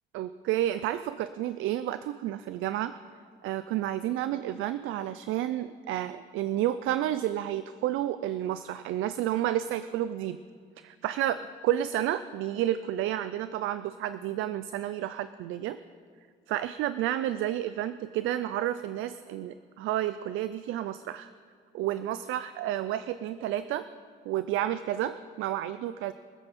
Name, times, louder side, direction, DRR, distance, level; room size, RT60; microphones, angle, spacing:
voice 1, 0.1-2.9 3.4-10.4 10.8-15.8 16.5-21.3 21.7-23.8 24.3-26.1, right 12 dB, 90° right, 13 dB, 0.4 m, -31 dB
24.0 x 8.1 x 4.2 m, 2.1 s
cardioid pair, 90°, 20 cm